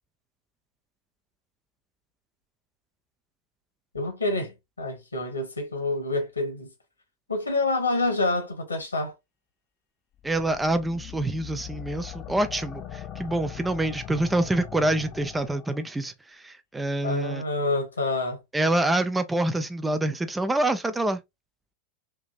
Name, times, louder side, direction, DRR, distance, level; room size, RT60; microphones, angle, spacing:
voice 1, 3.9-6.7 7.3-9.1 17.0-18.4, left 2 dB, 75° left, 1.2 m, -27 dB
sound 1, 10.2-15.9, left 10 dB, 35° left, 0.7 m, -40 dB
voice 2, 10.2-17.4 18.5-21.2, right 1 dB, 10° right, 0.3 m, -26 dB
3.4 x 2.7 x 2.5 m
figure-of-eight pair, 90°, 0 cm